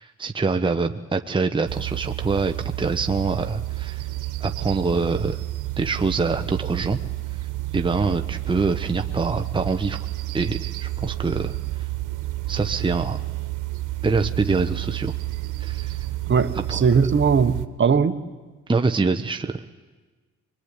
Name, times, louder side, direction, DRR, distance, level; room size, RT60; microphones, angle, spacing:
voice 1, 0.0-4.1 4.4-5.4 5.8-7.0 7.7-10.0 10.3-11.6 12.5-13.2 14.0-15.1 15.6-16.0 16.7-16.8 18.7-19.6, right 4 dB, 15° right, 6 dB, 1.1 m, -25 dB
sound 1, 1.7-17.7, right 17 dB, 85° right, 1.4 m, -30 dB
voice 2, 16.3-18.2, right 6 dB, 40° right, 10 dB, 1.4 m, -19 dB
23.5 x 22.5 x 9.9 m, 1.3 s
cardioid pair, 90°, 30 cm